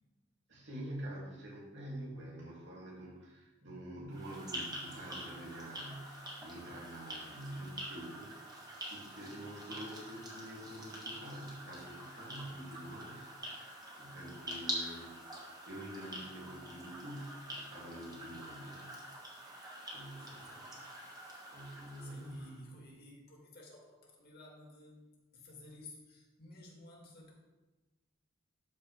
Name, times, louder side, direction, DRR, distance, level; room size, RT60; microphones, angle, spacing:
voice 1, 0.5-18.9 19.9-20.7 21.5-22.4, right 1 dB, 60° right, -4 dB, 2.5 m, -47 dB
sound 1, 4.1-22.6, right 1 dB, 20° right, 1.6 m, -46 dB
voice 2, 20.2-20.7 22.0-27.3, left 2 dB, 50° left, -2 dB, 2.2 m, -54 dB
12.5 x 4.7 x 3.3 m, 1.1 s
head